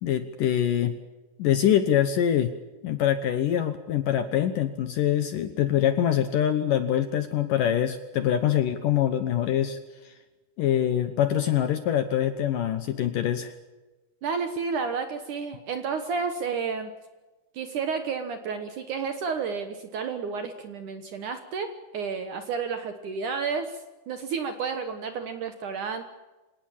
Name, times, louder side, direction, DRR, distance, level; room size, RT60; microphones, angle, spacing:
voice 1, 0.0-1.0 1.4-2.5 2.8-9.8 10.0-10.1 10.6-13.5, left 10 dB, 70° left, 9 dB, 2.2 m, -24 dB
voice 2, 14.2-16.9 17.5-26.0, right 5 dB, 65° right, 8 dB, 2.1 m, -31 dB
26.0 x 18.5 x 7.4 m, 1.2 s
omnidirectional pair, 5.0 m